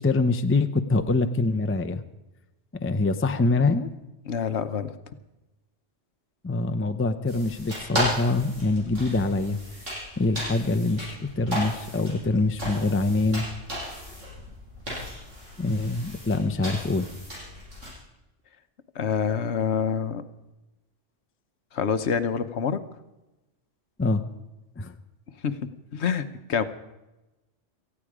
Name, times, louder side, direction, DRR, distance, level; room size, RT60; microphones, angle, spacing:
voice 1, 0.0-2.0 2.8-3.9 6.4-9.6 10.2-13.5 15.6-17.1 24.0-24.3 24.8-24.9, left 2 dB, 15° left, 9 dB, 0.6 m, -24 dB
voice 2, 4.3-4.9 18.9-20.2 21.7-22.8 25.4-25.6 25.9-26.6, left 7 dB, 65° left, 11 dB, 1.1 m, -26 dB
sound 1, 7.3-17.9, equal, 85° right, 7.0 m, -35 dB
18.5 x 14.5 x 5.0 m, 1.0 s
omnidirectional pair, 1.3 m